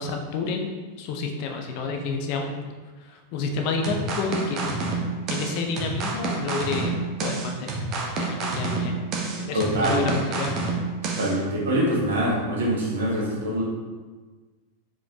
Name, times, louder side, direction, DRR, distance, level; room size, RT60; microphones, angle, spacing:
voice 1, 0.0-2.7 3.3-4.7 5.3-6.9 7.2-8.9 9.4-10.5, left 4 dB, 45° left, 3 dB, 0.6 m, -29 dB
sound 1, 3.8-11.3, right 3 dB, 35° right, 0.9 m, -28 dB
voice 2, 9.5-10.0 11.2-13.6, right 1 dB, 65° right, -4 dB, 1.3 m, -24 dB
4.5 x 4.3 x 2.8 m, 1.3 s
figure-of-eight pair, 90°, 0 cm